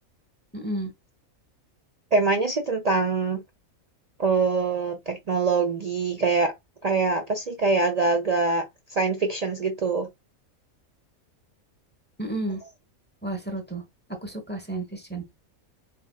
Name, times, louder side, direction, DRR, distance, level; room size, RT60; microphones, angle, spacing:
voice 1, 0.5-0.9 12.2-12.6 13.2-13.8 14.1-15.2, right 2 dB, 10° left, 0.8 m, -32 dB
voice 2, 2.1-3.4 4.2-6.5 6.8-8.6 8.9-10.1, right 4 dB, 65° right, 0.3 m, -24 dB
4.1 x 3.8 x 2.3 m
omnidirectional pair, 1.5 m